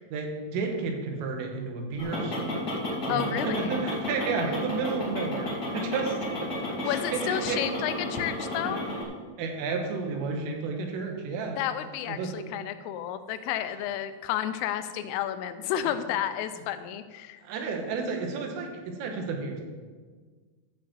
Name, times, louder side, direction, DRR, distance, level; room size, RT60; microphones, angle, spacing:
voice 1, 0.1-2.6 3.1-7.6 8.7-8.9 9.4-11.6 12.1-12.3 17.4-19.6, right 4 dB, 85° right, 2 dB, 4.0 m, -32 dB
sound 1, 2.0-9.0, left 1 dB, 35° left, 1.8 m, -32 dB
voice 2, 3.1-3.7 6.8-8.8 11.6-17.4, left 10 dB, 85° left, 10 dB, 3.2 m, -31 dB
12.0 x 5.4 x 7.6 m, 1.5 s
omnidirectional pair, 5.7 m